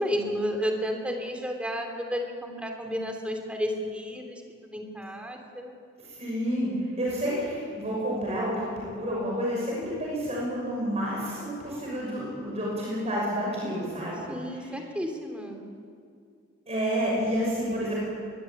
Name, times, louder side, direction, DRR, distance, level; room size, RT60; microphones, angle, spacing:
voice 1, 0.0-5.7 14.3-15.6, equal, 5° right, 3 dB, 3.2 m, -32 dB
voice 2, 6.0-14.3 14.5-14.8 16.7-18.0, equal, 35° right, -4 dB, 6.2 m, -29 dB
22.5 x 20.5 x 8.9 m, 2.2 s
head